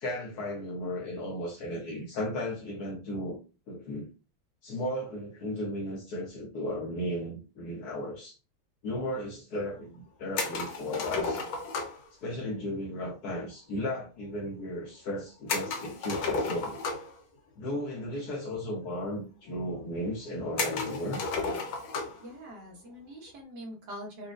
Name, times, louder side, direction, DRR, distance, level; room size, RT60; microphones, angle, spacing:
voice 1, 0.0-3.4 3.7-4.1 4.6-8.3 8.8-11.4 12.2-16.8 17.6-21.2, left 1 dB, 65° left, 1.0 m, -35 dB
sound 1, 10.4-12.1 15.5-17.2 18.3-18.4 18.6-18.7 19.5-19.6 20.6-22.2, left 4 dB, 85° left, 1.6 m, -33 dB
voice 2, 22.2-24.3, equal, 60° right, 1.4 m, -43 dB
4.1 x 2.3 x 2.5 m
omnidirectional pair, 2.2 m